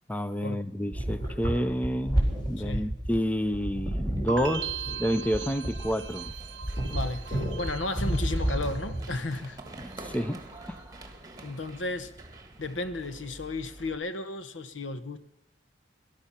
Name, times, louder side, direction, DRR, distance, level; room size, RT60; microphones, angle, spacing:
voice 1, 0.1-2.2 2.5-6.3 9.8-10.8, equal, 10° left, 0.5 m, -29 dB
sound 1, 0.9-9.2, right 1 dB, 25° left, 3.8 m, -31 dB
sound 2, 4.3-9.3 9.6-10.2, right 6 dB, 70° right, 0.8 m, -40 dB
Run, 6.2-14.0, right 2 dB, 20° right, 1.6 m, -47 dB
voice 2, 6.9-9.6 11.4-12.1 12.6-15.2, left 2 dB, 80° left, 1.1 m, -34 dB
19.5 x 12.0 x 5.7 m
head